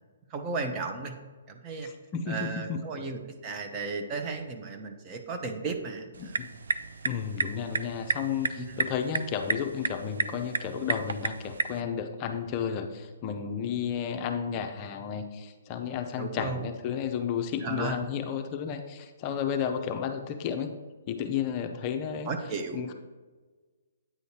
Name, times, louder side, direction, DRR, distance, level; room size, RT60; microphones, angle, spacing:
voice 1, 0.3-1.1 1.5-1.9 2.3-6.4 8.6-8.7 16.2-16.6 17.6-18.0 22.3-22.8, right 4 dB, 25° right, 5 dB, 0.7 m, -34 dB
voice 2, 1.8-2.8 6.2-6.5 7.0-20.7 21.1-22.3 22.7-22.9, left 7 dB, 30° left, 5 dB, 0.5 m, -32 dB
sound 1, 6.1-11.8, right 5 dB, 80° right, 0.3 m, -33 dB
9.1 x 6.4 x 2.8 m, 1.3 s
hypercardioid pair, 150°, 0 cm